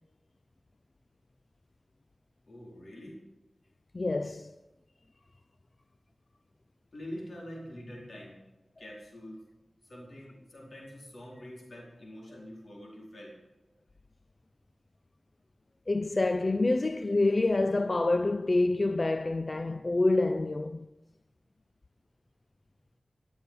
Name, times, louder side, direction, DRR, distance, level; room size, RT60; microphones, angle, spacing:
voice 1, 2.5-3.2 6.9-8.4 8.8-9.4 9.8-13.4, equal, 65° left, 4.5 m, -45 dB
voice 2, 3.9-4.5 15.9-20.9, left 2 dB, 45° left, 0.5 m, -27 dB
14.0 x 7.3 x 8.3 m
cardioid pair, 40°, 0 cm